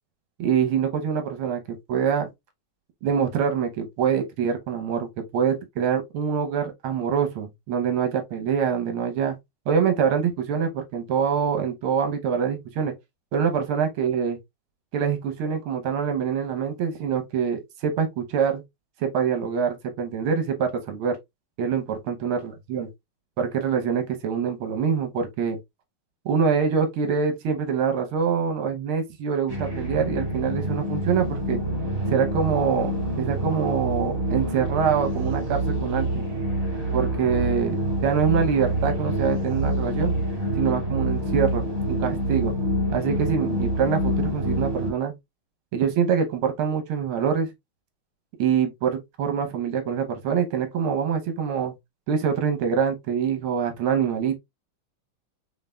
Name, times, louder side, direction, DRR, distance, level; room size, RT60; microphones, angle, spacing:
voice 1, 0.4-2.3 3.0-9.4 9.7-12.9 13.3-14.4 14.9-18.6 19.0-21.2 21.6-22.9 23.4-25.6 26.2-31.6 32.1-32.9 33.2-36.2 36.9-37.7 38.0-40.1 40.5-42.5 42.9-45.1 45.7-47.5 48.4-51.7 52.1-54.4, right 7 dB, 80° right, 1.7 m, -25 dB
sound 1, 29.5-44.9, right 1 dB, 15° right, 2.0 m, -27 dB
6.4 x 3.3 x 2.2 m
omnidirectional pair, 2.3 m